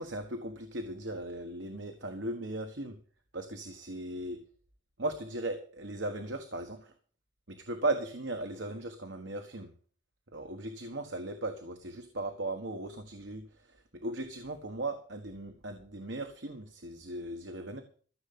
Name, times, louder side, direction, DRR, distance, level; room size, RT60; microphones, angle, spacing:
voice 1, 0.0-3.0 3.3-4.4 5.0-6.9 7.5-9.7 10.3-17.8, right 2 dB, 70° right, 6 dB, 1.5 m, -37 dB
14.5 x 7.0 x 8.5 m, 0.43 s
head